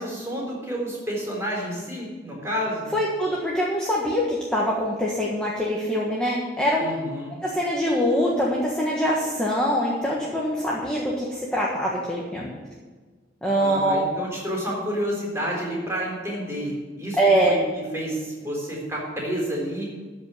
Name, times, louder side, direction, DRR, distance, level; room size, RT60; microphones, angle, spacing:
voice 1, 0.0-2.9 6.8-7.3 13.6-17.2 17.5-20.0, equal, 15° right, -3 dB, 3.9 m, -30 dB
voice 2, 2.9-7.0 7.4-12.5 13.4-14.1 17.2-17.6, equal, 5° left, -5 dB, 1.4 m, -23 dB
13.5 x 5.4 x 8.2 m, 1.4 s
head